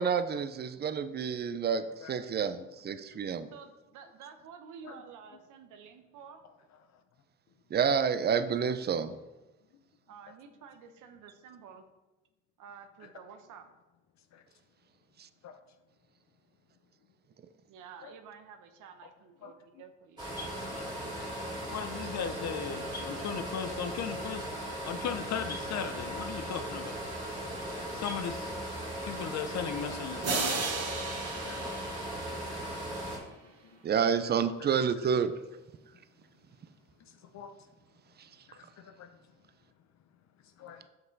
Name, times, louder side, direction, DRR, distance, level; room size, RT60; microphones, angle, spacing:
voice 1, 0.0-3.5 7.7-9.2 33.8-35.3, right 7 dB, 35° right, 12 dB, 0.5 m, -29 dB
voice 2, 3.5-6.4 10.1-11.8 12.6-13.6 17.7-20.7, right 6 dB, 85° right, 7 dB, 0.8 m, -51 dB
voice 3, 19.4-19.8 20.8-24.5 24.8-27.0 27.9-28.5 29.0-30.7 31.4-31.8 32.5-33.0 33.4-33.5 34.4-34.7 37.3-37.5 38.5-39.1 40.6-40.8, left 7 dB, 60° left, 8 dB, 0.6 m, -38 dB
sound 1, 20.2-33.2, right 1 dB, 15° right, 2.4 m, -38 dB
sound 2, 30.2-32.9, right 4 dB, 55° right, 1.2 m, -35 dB
6.0 x 5.4 x 4.0 m, 1.1 s
cardioid pair, 90°, 30 cm